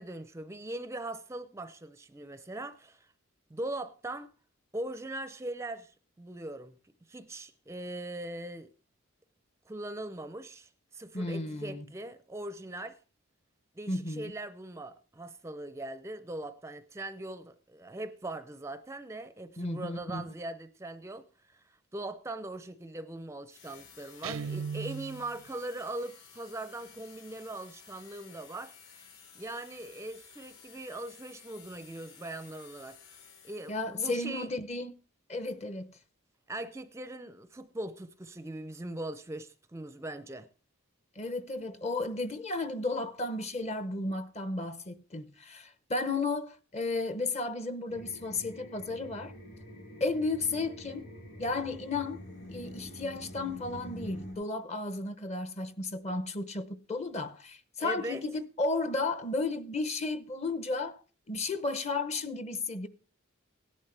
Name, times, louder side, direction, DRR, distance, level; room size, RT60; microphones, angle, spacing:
voice 1, 0.0-3.1 3.5-4.3 4.7-6.8 7.1-8.7 9.7-13.0 13.8-28.7 29.3-33.2 33.4-34.5 36.5-40.5 57.8-58.2, right 1 dB, 15° right, 0.5 m, -40 dB
voice 2, 11.1-11.9 13.9-14.3 19.6-20.2 33.7-34.9 35.3-36.0 41.2-49.3 50.0-51.1 51.4-61.0 61.3-62.9, left 3 dB, 35° left, 0.8 m, -33 dB
sound 1, 23.5-34.1, left 6 dB, 75° left, 5.9 m, -55 dB
Guitar, 24.2-25.4, right 6 dB, 85° right, 0.6 m, -37 dB
sound 2, 47.9-54.3, equal, 55° left, 7.0 m, -46 dB
17.0 x 11.0 x 3.3 m
head